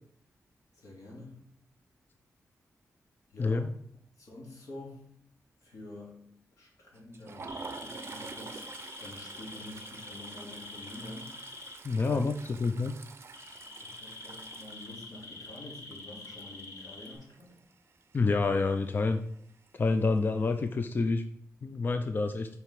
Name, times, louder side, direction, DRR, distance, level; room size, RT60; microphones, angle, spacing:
voice 1, 0.7-1.4 3.3-3.8 4.2-5.1 5.6-6.2 6.6-11.4 12.1-12.4 13.8-17.6, left 2 dB, 90° left, -3 dB, 2.7 m, -47 dB
voice 2, 3.4-3.7 11.8-12.3 12.6-12.9 18.1-19.2 19.7-21.2 21.6-22.5, left 3 dB, 35° left, 7 dB, 0.4 m, -27 dB
Toilet flush, 6.9-17.7 18.0-18.2 18.5-18.7 19.7-20.2, right 4 dB, 45° right, 0.6 m, -47 dB
sound 1, 7.5-11.7 13.3-17.1, left 3 dB, 70° left, 1.9 m, -46 dB
5.9 x 4.6 x 5.9 m, 0.65 s
wide cardioid pair, 135°, 6 cm